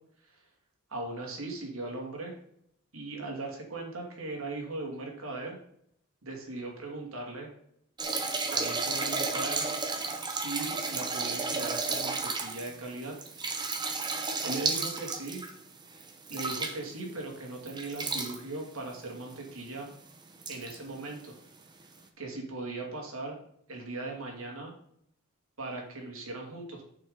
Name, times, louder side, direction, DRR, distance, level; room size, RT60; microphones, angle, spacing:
voice 1, 0.9-2.4 2.9-5.6 6.2-7.5 8.5-9.7 10.2-13.1 14.4-15.4 16.3-19.9 20.5-21.4 22.2-23.4 23.7-24.7 25.6-26.8, right 2 dB, 70° right, 0 dB, 2.7 m, -38 dB
sound 1, 8.0-17.1 17.7-18.4 19.3-19.4 19.7-19.8 20.4-20.8 21.8-21.9, right 4 dB, 20° right, 1.0 m, -33 dB
9.2 x 7.0 x 4.0 m, 0.71 s
head